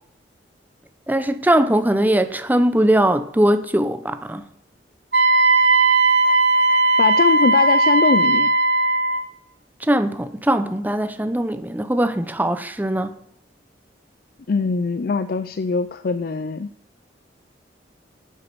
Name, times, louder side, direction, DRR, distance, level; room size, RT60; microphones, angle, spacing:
voice 1, 1.1-4.5 9.8-13.2, right 1 dB, 10° right, 0.7 m, -20 dB
Wind instrument woodwind instrument, 5.1-9.3, right 2 dB, 75° right, 2.4 m, -17 dB
voice 2, 7.0-8.5 14.5-16.7, left 4 dB, 55° left, 0.4 m, -21 dB
8.9 x 8.3 x 6.9 m
head